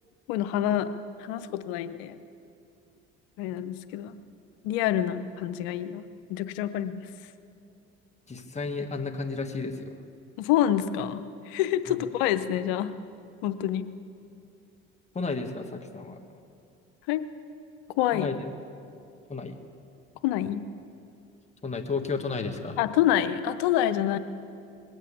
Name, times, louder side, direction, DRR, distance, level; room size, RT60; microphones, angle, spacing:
voice 1, 0.3-0.9 1.2-2.2 3.4-4.2 4.6-6.0 6.3-7.0 10.4-12.9 13.4-13.9 17.1-17.2 18.0-18.3 20.2-20.6 22.8-24.2, left 11 dB, 85° left, 12 dB, 0.8 m, -27 dB
voice 2, 8.3-9.9 15.1-16.2 18.1-18.4 19.3-19.5 21.6-22.8, left 4 dB, 20° left, 4 dB, 1.6 m, -32 dB
20.5 x 8.3 x 8.3 m, 2.5 s
supercardioid pair, 70°, 31 cm